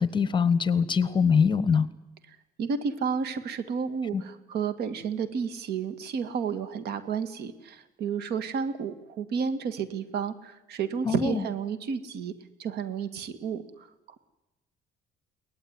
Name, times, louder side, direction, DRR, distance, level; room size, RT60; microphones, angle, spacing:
voice 1, 0.0-1.9 4.1-4.2 11.0-11.4, left 6 dB, 30° left, 15 dB, 1.3 m, -23 dB
voice 2, 2.6-12.3 12.6-13.9, right 6 dB, 70° right, 12 dB, 2.1 m, -31 dB
22.5 x 18.5 x 9.8 m, 0.99 s
cardioid pair, 110°, 17 cm